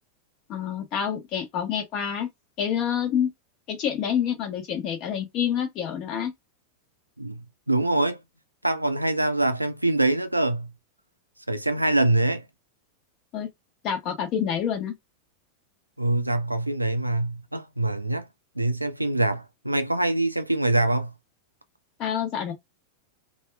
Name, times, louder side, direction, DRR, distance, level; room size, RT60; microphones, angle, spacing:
voice 1, 0.5-2.3 2.6-3.3 3.7-6.3 13.3-13.5 13.8-14.9 22.0-22.5, left 8 dB, 40° left, 1.0 m, -27 dB
voice 2, 7.2-8.2 8.6-10.7 11.5-12.5 16.0-18.3 18.6-21.1, right 2 dB, 85° right, 0.3 m, -24 dB
2.7 x 2.3 x 2.2 m
figure-of-eight pair, 90°, 0 cm